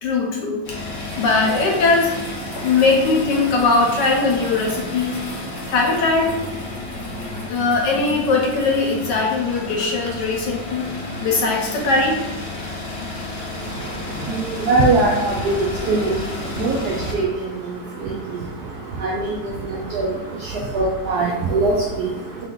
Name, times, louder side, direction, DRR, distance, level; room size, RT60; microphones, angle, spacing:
voice 1, 0.0-0.6 1.2-2.1 2.6-5.2 5.7-6.3 7.4-10.9 11.2-12.2 13.0-13.1 14.2-14.3, left 3 dB, 70° left, 0 dB, 1.1 m, -20 dB
sound 1, 0.6-17.1, left 1 dB, 55° left, 0.7 m, -32 dB
voice 2, 13.6-22.5, right 2 dB, 75° right, -2 dB, 0.9 m, -23 dB
3.7 x 2.6 x 3.7 m, 1.1 s
omnidirectional pair, 2.2 m